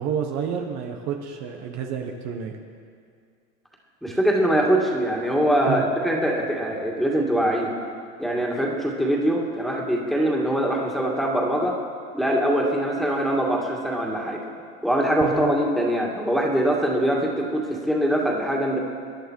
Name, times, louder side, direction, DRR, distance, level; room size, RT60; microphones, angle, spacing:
voice 1, 0.0-2.6 5.7-5.8 15.2-15.5, right 8 dB, 50° right, 3 dB, 1.4 m, -29 dB
voice 2, 4.0-7.7 8.2-11.8 12.1-14.4 14.8-18.8, right 1 dB, ahead, -1 dB, 2.4 m, -23 dB
21.5 x 10.5 x 4.8 m, 2.2 s
supercardioid pair, 105°, 35 cm